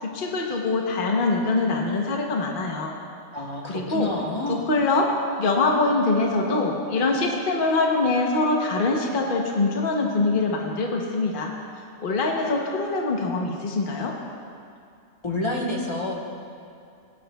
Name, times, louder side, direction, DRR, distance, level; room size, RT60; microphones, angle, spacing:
voice 1, 0.0-2.9 3.7-4.1 4.5-5.1 5.4-11.5 12.0-14.2, left 3 dB, 50° left, 0 dB, 1.1 m, -24 dB
voice 2, 3.3-4.7 15.2-16.1, left 1 dB, 25° left, -2 dB, 1.2 m, -28 dB
17.5 x 9.9 x 2.3 m, 2.4 s
omnidirectional pair, 1.2 m